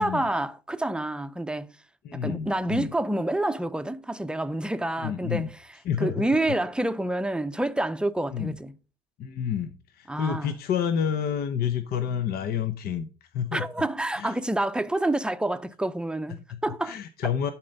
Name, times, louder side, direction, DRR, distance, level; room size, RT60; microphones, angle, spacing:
voice 1, 0.0-1.8 2.1-5.6 6.0-8.7 10.1-10.5 13.5-17.0 17.2-17.3, right 1 dB, 5° right, 0.6 m, -28 dB
voice 2, 2.0-2.9 5.0-5.5 5.8-6.3 8.3-8.5 9.2-13.1 13.3-13.6 14.1-14.3 16.5-16.6 16.8-17.5, left 8 dB, 65° left, 0.8 m, -29 dB
11.0 x 4.5 x 5.3 m
cardioid pair, 110°, 17 cm